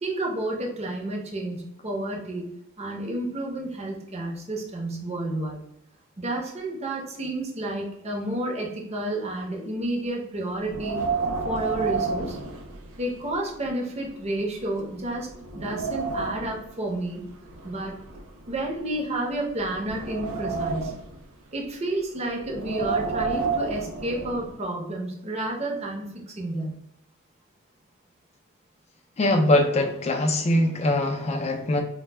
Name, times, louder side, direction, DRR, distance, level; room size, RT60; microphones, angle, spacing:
voice 1, 0.0-2.5 2.8-5.6 6.2-11.0 11.4-12.4 13.0-15.3 15.5-17.2 17.6-17.9 18.5-21.0 21.5-26.7, right 1 dB, 30° right, 0 dB, 0.6 m, -30 dB
Wind, 10.6-13.3 13.6-13.7 14.4-14.5 15.0-16.6 17.4-19.0 19.5-21.2 22.4-24.5, right 4 dB, 90° right, 0.5 m, -30 dB
voice 2, 29.2-31.8, left 1 dB, 30° left, 4 dB, 0.4 m, -22 dB
2.2 x 2.1 x 3.2 m, 0.80 s
head